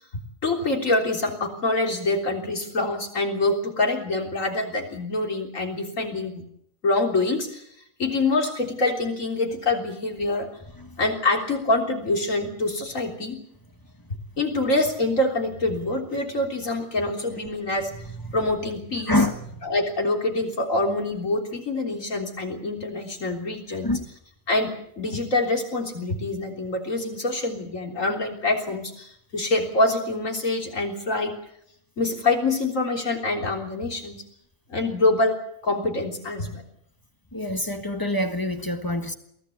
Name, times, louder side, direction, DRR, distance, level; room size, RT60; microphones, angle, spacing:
voice 1, 0.4-6.4 6.8-7.6 8.0-10.5 11.0-13.4 14.4-17.9 18.3-19.1 19.6-23.9 24.5-31.3 32.0-34.2 34.7-35.4 35.6-36.6, left 2 dB, 65° left, 2 dB, 3.9 m, -25 dB
voice 2, 19.1-19.4 23.8-24.0 37.3-39.1, left 1 dB, 15° left, 7 dB, 1.4 m, -25 dB
23.0 x 16.5 x 8.2 m, 0.73 s
omnidirectional pair, 1.5 m